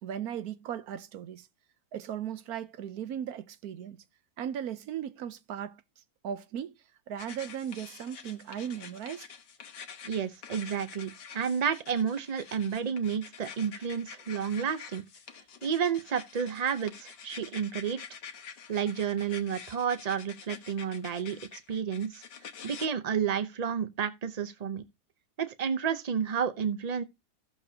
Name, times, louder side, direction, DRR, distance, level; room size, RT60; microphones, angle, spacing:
voice 1, 0.0-1.5 1.9-4.0 4.4-5.8 6.2-6.7 7.1-9.3, right 9 dB, 65° right, 1.1 m, -37 dB
sound 1, 7.2-22.9, left 7 dB, 85° left, 1.7 m, -47 dB
voice 2, 10.0-15.0 15.6-18.0 18.7-22.2 22.6-24.8 25.4-27.0, right 7 dB, 50° right, 0.5 m, -31 dB
15.0 x 6.7 x 2.8 m
omnidirectional pair, 1.8 m